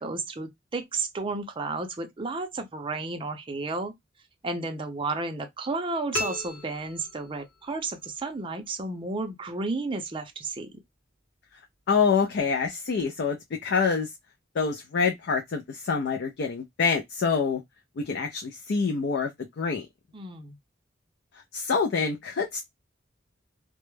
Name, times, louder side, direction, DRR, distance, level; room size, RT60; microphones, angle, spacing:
voice 1, 0.0-3.9 4.4-10.8 20.1-20.6, right 3 dB, 25° right, 0.5 m, -32 dB
sound 1, 6.1-7.7, left 2 dB, 80° left, 1.1 m, -35 dB
voice 2, 11.9-13.4 13.6-14.1 14.6-17.6 18.0-19.3 19.6-19.9 21.5-22.6, left 5 dB, 60° left, 0.4 m, -26 dB
2.2 x 2.0 x 3.0 m
head